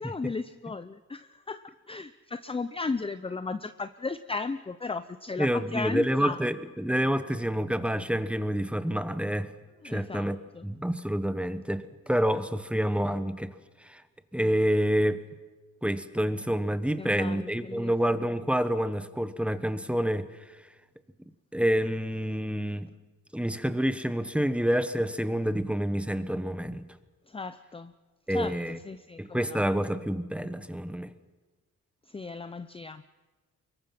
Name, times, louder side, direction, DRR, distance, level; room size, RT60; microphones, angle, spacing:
voice 1, 0.0-6.4 9.8-10.6 17.0-17.9 27.3-27.9 28.3-29.6 32.1-33.0, left 4 dB, 15° left, 12 dB, 0.6 m, -35 dB
voice 2, 5.4-9.5 9.8-10.4 10.6-13.5 13.8-14.0 14.3-15.2 15.8-20.3 21.5-22.9 23.3-26.8 28.3-28.8 29.2-31.1, equal, 5° right, 12 dB, 1.2 m, -28 dB
24.5 x 22.5 x 5.9 m, 1.3 s
cardioid pair, 105°, 32 cm